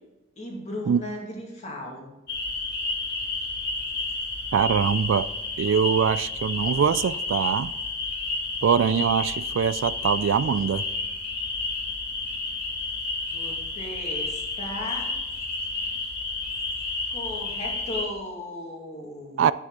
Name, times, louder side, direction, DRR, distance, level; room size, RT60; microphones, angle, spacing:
voice 1, 0.4-2.1 13.3-15.1 17.1-19.5, left 1 dB, 35° left, 2.3 m, -36 dB
sound 1, 2.3-18.0, left 3 dB, 55° left, 2.3 m, -31 dB
voice 2, 4.5-5.3 5.6-7.7 8.6-10.8 19.4-19.5, right 7 dB, 70° right, 0.3 m, -23 dB
11.0 x 8.6 x 3.9 m
head